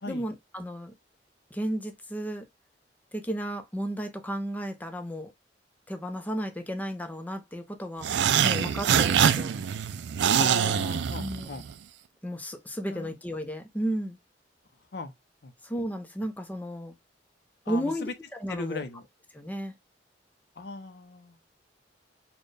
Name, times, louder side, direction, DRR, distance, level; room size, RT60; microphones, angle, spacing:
voice 1, 0.1-0.9 1.5-2.4 3.1-5.3 5.9-9.6 11.1-11.5 12.2-14.2 15.6-16.9 17.7-18.8 19.3-19.7, equal, 10° left, 0.6 m, -34 dB
sound 1, 8.0-11.7, right 8 dB, 70° right, 0.3 m, -24 dB
voice 2, 10.4-11.6 12.9-13.1 14.9-15.1 15.4-15.5 17.7-18.1 18.5-19.0 20.6-21.5, left 3 dB, 65° left, 0.6 m, -37 dB
4.3 x 2.3 x 3.2 m
head